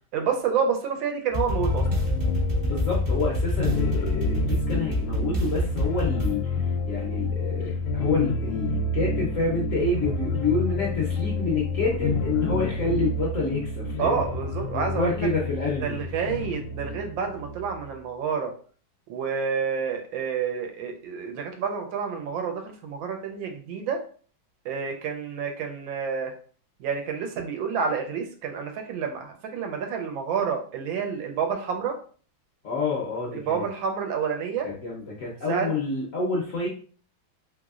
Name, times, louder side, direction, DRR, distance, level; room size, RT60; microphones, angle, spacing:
voice 1, 0.1-1.9 14.0-15.3 15.8-18.5 19.1-24.0 24.6-26.3 26.8-32.0 33.3-34.7 35.5-35.7, right 6 dB, 80° right, 4 dB, 1.4 m, -29 dB
sound 1, 1.3-6.4, left 1 dB, 45° right, 0.7 m, -27 dB
sound 2, 1.6-17.9, left 2 dB, 85° left, 1.4 m, -29 dB
voice 2, 2.6-14.2 14.7-16.0 32.6-33.6 34.6-36.7, left 3 dB, 60° left, -3 dB, 0.8 m, -28 dB
3.3 x 3.0 x 2.4 m, 0.43 s
omnidirectional pair, 2.1 m